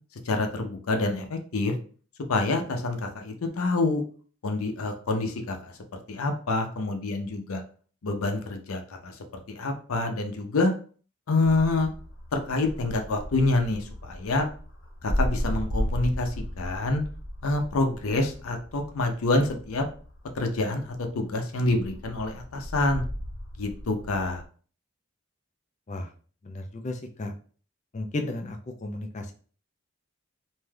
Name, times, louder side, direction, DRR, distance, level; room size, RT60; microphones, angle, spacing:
voice 1, 0.3-1.7 2.3-4.0 4.4-5.7 6.1-7.6 8.0-9.2 9.5-10.7 11.3-11.9 12.3-14.5 15.0-17.0 17.4-19.8 20.4-23.0 23.6-24.4, left 2 dB, 90° left, 5 dB, 0.6 m, -27 dB
sound 1, 11.7-21.1 21.6-24.4, equal, 55° left, 0.8 m, -35 dB
voice 2, 26.4-27.3 27.9-29.3, left 2 dB, 35° left, 5 dB, 0.4 m, -34 dB
2.6 x 2.3 x 3.2 m, 0.42 s
head